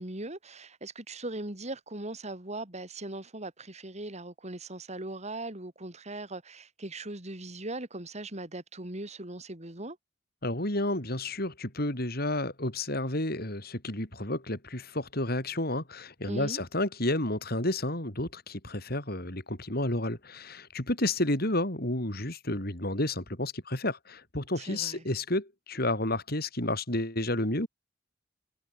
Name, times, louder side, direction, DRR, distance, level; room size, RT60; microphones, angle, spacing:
voice 1, 0.0-10.0 16.3-16.6 24.6-25.0, right 2 dB, 40° right, 3.8 m, -39 dB
voice 2, 10.4-27.7, left 1 dB, 55° left, 7.3 m, -31 dB
head